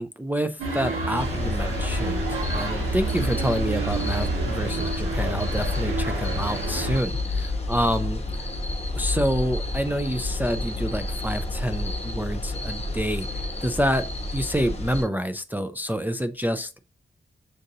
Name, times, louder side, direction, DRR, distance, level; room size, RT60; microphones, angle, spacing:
voice 1, 0.0-8.2 8.9-16.8, equal, 10° right, 0.3 m, -28 dB
sound 1, 0.6-7.0, right 3 dB, 80° right, 1.5 m, -29 dB
sound 2, 1.1-15.0, left 2 dB, 30° left, 0.9 m, -30 dB
6.4 x 2.5 x 2.7 m
wide cardioid pair, 85°, 21 cm